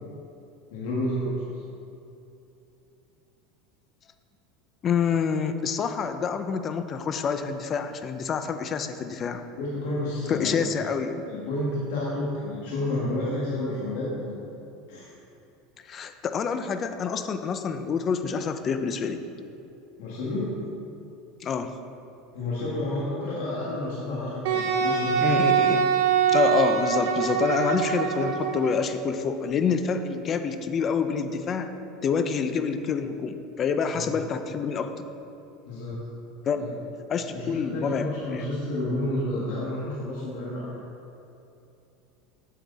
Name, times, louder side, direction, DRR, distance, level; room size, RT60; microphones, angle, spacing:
voice 1, 0.7-1.4 9.6-10.7 11.2-14.4 14.9-15.1 20.0-20.6 22.3-25.2 33.9-34.1 35.7-36.0 36.6-36.7 37.3-40.7, left 1 dB, 75° left, -7 dB, 2.0 m, -30 dB
voice 2, 4.8-9.4 10.3-11.2 15.9-19.2 21.4-21.7 25.2-25.8 26.3-31.7 32.0-34.9 36.5-36.6 37.1-38.4, left 6 dB, 30° left, 9 dB, 0.6 m, -27 dB
Wind instrument woodwind instrument, 24.4-28.7, right 8 dB, 75° right, 0.9 m, -24 dB
8.4 x 7.8 x 4.1 m, 2.8 s
supercardioid pair, 130°, 0 cm